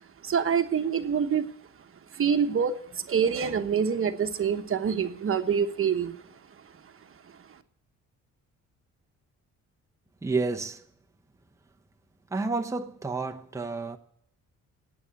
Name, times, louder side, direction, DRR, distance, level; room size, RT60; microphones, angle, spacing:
voice 1, 0.2-1.5 2.1-6.2, right 7 dB, 45° right, 1.2 m, -26 dB
voice 2, 10.2-10.8 12.3-14.0, right 3 dB, 10° right, 0.9 m, -30 dB
12.0 x 8.9 x 9.5 m
cardioid pair, 90°, 30 cm